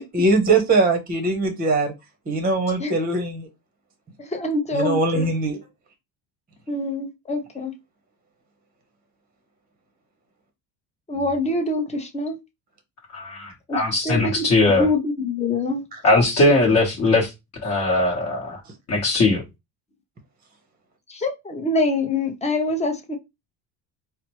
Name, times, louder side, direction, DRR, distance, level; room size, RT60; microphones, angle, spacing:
voice 1, 0.0-1.9 2.3-3.5 4.7-5.6 15.9-16.0, right 2 dB, 20° right, 0.8 m, -21 dB
voice 2, 4.2-5.2 6.7-7.7 11.1-12.4 13.7-14.4 14.8-15.8 16.1-16.2 21.1-23.2, left 2 dB, 15° left, 0.7 m, -25 dB
voice 3, 13.1-14.9 16.0-17.3 17.6-18.6 18.9-19.4, left 2 dB, 35° left, 1.1 m, -19 dB
4.1 x 2.0 x 3.0 m
cardioid pair, 125°, 43 cm